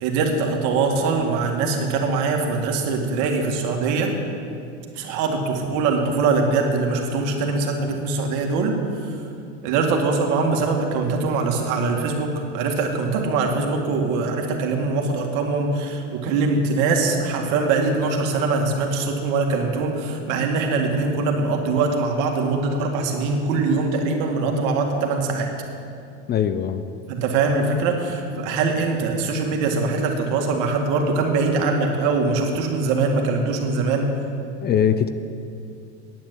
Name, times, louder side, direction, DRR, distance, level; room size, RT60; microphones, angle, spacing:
voice 1, 0.0-4.1 5.0-8.8 9.0-9.2 9.6-25.5 27.1-34.1, right 4 dB, 60° right, 2 dB, 2.1 m, -22 dB
voice 2, 26.3-26.9 34.6-35.1, left 9 dB, 30° left, 11 dB, 0.5 m, -21 dB
9.6 x 8.6 x 8.3 m, 2.5 s
supercardioid pair, 110°, 34 cm